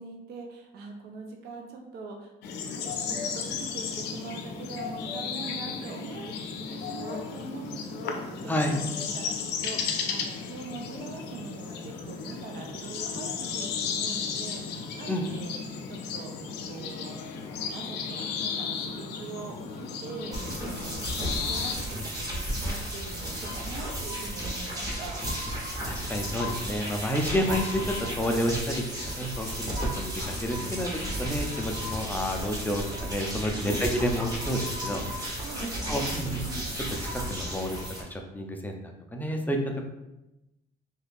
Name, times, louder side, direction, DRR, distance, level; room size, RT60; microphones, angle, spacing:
voice 1, 0.0-2.3 2.7-6.3 6.7-15.5 15.9-16.3 16.7-17.1 17.7-21.1 21.4-25.2 33.5-34.0 35.0-35.1 35.4-36.7, right 3 dB, 70° right, 2 dB, 0.5 m, -42 dB
sound 1, 2.4-21.7, left 6 dB, 80° left, 0.5 m, -34 dB
sound 2, 20.3-38.0, equal, 20° right, 0.9 m, -33 dB
voice 2, 25.8-30.9 31.2-35.0 35.9-36.4 37.1-39.6, equal, 10° left, 2 dB, 0.4 m, -30 dB
2.7 x 2.4 x 3.4 m, 0.94 s
cardioid pair, 110°, 17 cm